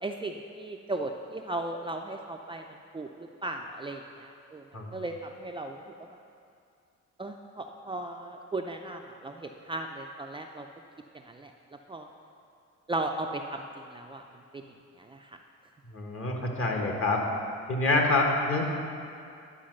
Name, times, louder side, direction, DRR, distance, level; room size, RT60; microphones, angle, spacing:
voice 1, 0.0-2.6 2.9-4.6 4.9-5.8 7.2-10.7 11.3-11.5 11.9-12.1 12.9-14.2 14.5-14.6 15.0-15.4, right 2 dB, 15° right, 2 dB, 0.4 m, -36 dB
voice 2, 15.8-17.2 17.7-18.7, left 2 dB, 45° left, 1 dB, 1.6 m, -26 dB
10.5 x 4.8 x 6.4 m, 2.4 s
cardioid pair, 90°, 30 cm